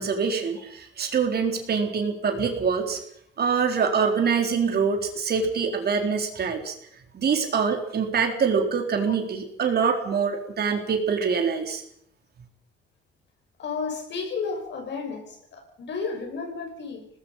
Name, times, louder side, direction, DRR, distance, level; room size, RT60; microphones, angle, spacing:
voice 1, 0.0-3.0 3.4-6.7 7.1-11.8, right 6 dB, 55° right, 4.1 m, -25 dB
voice 2, 13.6-17.1, left 5 dB, 65° left, 5.9 m, -32 dB
25.5 x 19.5 x 5.7 m
cardioid pair, 90°, 20 cm